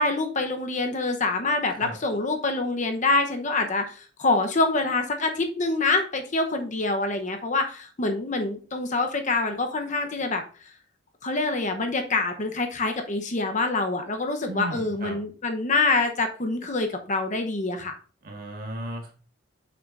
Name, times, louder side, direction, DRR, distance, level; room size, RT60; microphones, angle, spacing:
voice 1, 0.0-10.4 11.2-17.9, left 3 dB, 40° left, 5 dB, 0.8 m, -26 dB
voice 2, 14.5-15.2 18.2-19.1, right 1 dB, 45° right, 1 dB, 1.7 m, -35 dB
7.4 x 5.6 x 2.5 m, 0.39 s
head